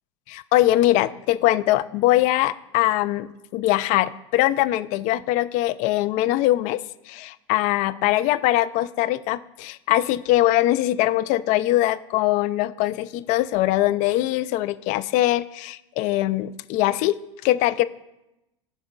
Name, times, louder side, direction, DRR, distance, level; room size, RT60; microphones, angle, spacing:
voice 1, 0.3-6.8 7.1-17.8, left 15 dB, 50° left, 16 dB, 0.4 m, -22 dB
13.5 x 5.5 x 2.3 m, 0.93 s
hypercardioid pair, 95°, 16 cm